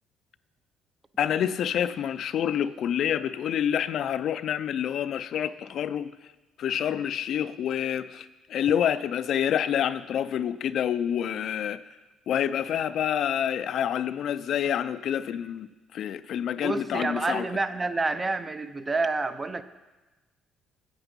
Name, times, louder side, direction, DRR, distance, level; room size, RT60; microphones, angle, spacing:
voice 1, 1.2-6.1 6.6-11.8 12.3-17.4, left 9 dB, 60° left, 14 dB, 0.4 m, -27 dB
voice 2, 16.6-19.6, right 3 dB, 20° right, 12 dB, 0.5 m, -28 dB
8.9 x 8.1 x 5.2 m, 1.1 s
cardioid pair, 115°, 0 cm